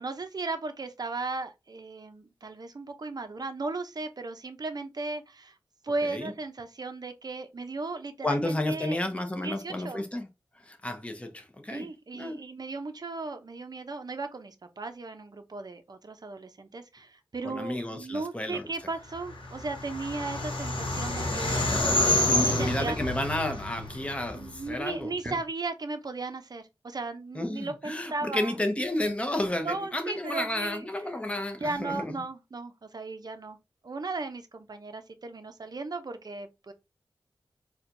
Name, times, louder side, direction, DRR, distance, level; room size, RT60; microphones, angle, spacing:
voice 1, 0.0-5.5 5.8-9.0 9.4-10.0 11.7-21.6 22.1-23.0 24.3-28.5 29.6-30.9 31.6-33.6 33.8-36.7, right 3 dB, 50° right, 0.6 m, -36 dB
voice 2, 8.2-10.3 10.6-11.9 12.1-12.4 17.4-18.7 22.2-25.4 27.3-32.2, left 1 dB, 15° left, 0.7 m, -32 dB
sound 1, 19.3-24.7, left 1 dB, 70° left, 0.9 m, -28 dB
4.3 x 2.2 x 2.5 m
wide cardioid pair, 80°, 9 cm